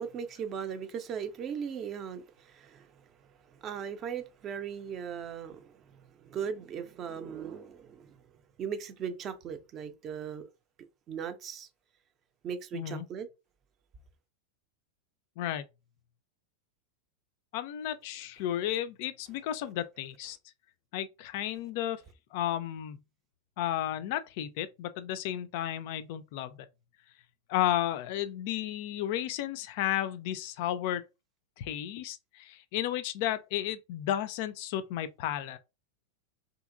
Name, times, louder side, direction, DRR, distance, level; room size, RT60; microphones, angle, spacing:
voice 1, 0.0-8.2 8.6-10.4 11.1-11.7 12.4-13.3, right 7 dB, 30° right, 0.5 m, -38 dB
voice 2, 12.7-13.1 15.4-15.6 17.5-20.4 20.9-22.0 22.3-23.0 23.6-26.7 27.5-31.0 31.6-35.6, left 12 dB, 50° left, 0.3 m, -33 dB
2.7 x 2.7 x 2.5 m
figure-of-eight pair, 90°, 0 cm